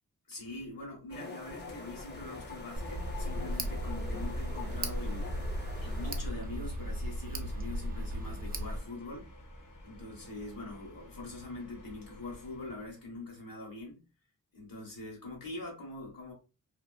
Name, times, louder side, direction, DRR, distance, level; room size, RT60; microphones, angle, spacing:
voice 1, 0.3-5.3 5.8-9.3 9.8-14.0 14.5-16.3, left 2 dB, 80° left, 1.2 m, -43 dB
sound 1, 1.1-6.2, left 4 dB, 30° left, 0.7 m, -45 dB
sound 2, 1.5-13.1, equal, 60° left, 0.7 m, -52 dB
Tick, 2.7-8.8, equal, 30° right, 0.4 m, -36 dB
2.7 x 2.3 x 2.2 m
wide cardioid pair, 75°, 34 cm